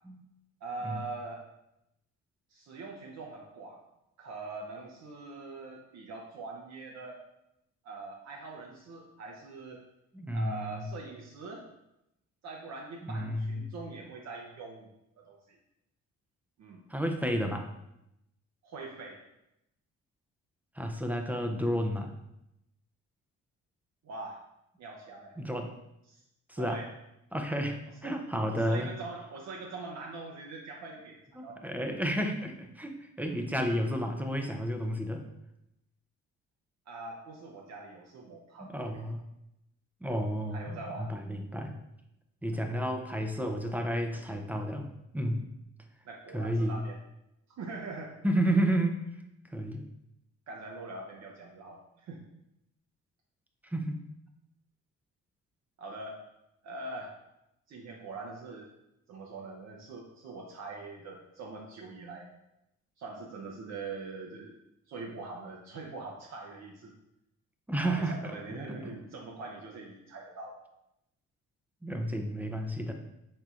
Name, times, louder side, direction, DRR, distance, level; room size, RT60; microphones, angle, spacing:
voice 1, 0.6-1.4 2.5-3.8 4.2-7.2 7.8-9.8 10.3-11.6 12.4-14.9 15.2-15.6 16.6-16.8 18.6-19.2 24.0-24.4 24.8-25.4 26.1-26.2 26.6-26.9 28.0-28.1 28.5-31.7 36.9-39.1 40.2-41.1 42.5-42.8 46.0-47.0 47.6-48.1 50.5-52.2 55.8-56.2 56.6-57.1 57.7-58.7 59.1-62.3 63.0-64.5 64.9-66.9 67.8-70.6, right 3 dB, 60° right, 0 dB, 0.6 m, -43 dB
voice 2, 10.1-10.9 13.0-13.6 16.9-17.7 20.8-22.1 25.4-25.7 26.5-26.8 27.3-28.9 31.4-35.2 38.7-39.2 40.0-41.7 42.4-44.9 45.1-45.4 46.3-46.8 48.2-49.0 49.5-49.8 53.6-54.0 67.7-68.3 68.7-69.0 71.8-72.9, equal, 5° right, 4 dB, 0.4 m, -31 dB
4.3 x 3.8 x 2.4 m, 0.86 s
cardioid pair, 90°, 30 cm